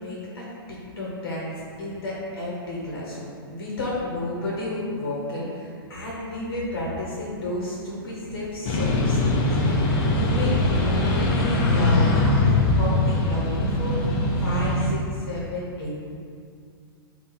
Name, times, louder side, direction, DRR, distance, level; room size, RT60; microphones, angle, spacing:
voice 1, 0.0-15.9, left 1 dB, 60° left, -5 dB, 0.9 m, -32 dB
sound 1, 8.6-14.9, left 2 dB, 35° left, 0.5 m, -21 dB
3.7 x 2.3 x 4.3 m, 2.3 s
figure-of-eight pair, 110°, 13 cm